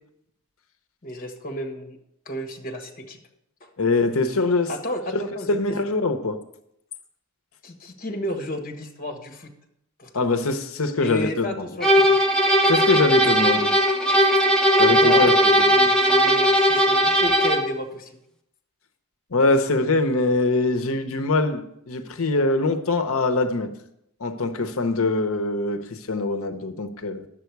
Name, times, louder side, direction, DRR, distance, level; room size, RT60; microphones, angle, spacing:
voice 1, 1.0-2.0 2.2-3.2 3.6-3.7 4.7-5.6 7.6-9.5 10.0-10.2 11.0-12.2 14.9-18.1, left 1 dB, 45° left, 1.5 m, -32 dB
voice 2, 3.8-4.7 5.1-6.4 10.1-11.7 12.7-13.8 14.8-15.7 19.3-23.7 24.2-27.3, left 3 dB, 75° left, 0.9 m, -23 dB
sound 1, 11.8-17.7, equal, 5° left, 0.9 m, -18 dB
10.5 x 7.6 x 4.6 m
head